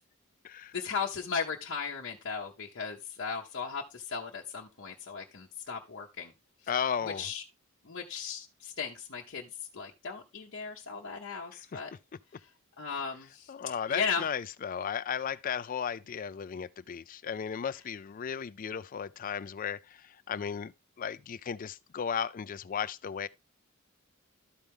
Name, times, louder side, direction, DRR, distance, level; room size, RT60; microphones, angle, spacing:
voice 1, 0.7-6.3 7.0-7.4 7.8-11.9 12.8-13.5 13.9-14.2, left 5 dB, 55° left, 0.9 m, -36 dB
voice 2, 6.7-7.3 11.7-11.8 13.5-20.0 20.3-20.7 21.0-23.3, left 7 dB, 40° left, 0.3 m, -35 dB
12.5 x 4.5 x 3.5 m
head